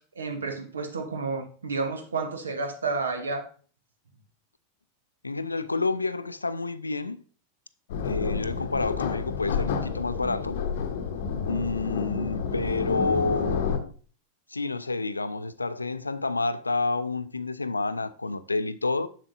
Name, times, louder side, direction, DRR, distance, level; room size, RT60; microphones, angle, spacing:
voice 1, 0.2-3.5, right 4 dB, 70° right, 0.9 m, -31 dB
voice 2, 5.2-7.2 8.0-10.6 11.5-13.9 14.5-19.1, left 3 dB, 80° left, 0.4 m, -29 dB
sound 1, 7.9-13.8, left 6 dB, 55° left, 0.8 m, -30 dB
7.2 x 7.0 x 2.6 m
figure-of-eight pair, 90°, 0 cm